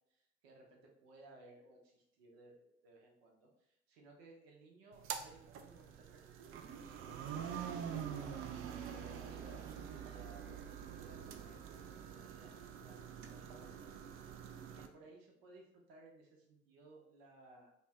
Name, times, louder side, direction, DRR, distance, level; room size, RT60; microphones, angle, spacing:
voice 1, 0.1-8.3 8.8-13.9 14.7-17.7, right 2 dB, 70° right, 0 dB, 0.7 m, -61 dB
sound 1, 4.9-14.9, right 8 dB, 45° right, 0.4 m, -46 dB
2.4 x 2.1 x 3.4 m, 0.77 s
figure-of-eight pair, 50°, 32 cm